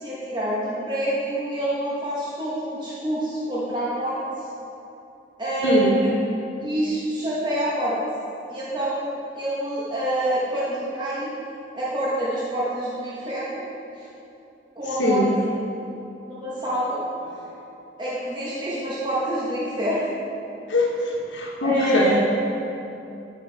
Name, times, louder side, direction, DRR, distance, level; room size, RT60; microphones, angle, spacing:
voice 1, 0.0-4.2 5.4-6.1 6.6-8.0 8.5-11.3 11.7-13.6 14.0-14.1 14.7-15.2 16.2-17.0 18.0-20.1 21.6-22.1, right 1 dB, 25° right, -8 dB, 1.2 m, -26 dB
voice 2, 5.6-6.0 15.0-15.4 17.3-17.5 20.7-22.1, left 2 dB, 85° left, -1 dB, 1.2 m, -22 dB
9.9 x 5.4 x 4.0 m, 2.8 s
head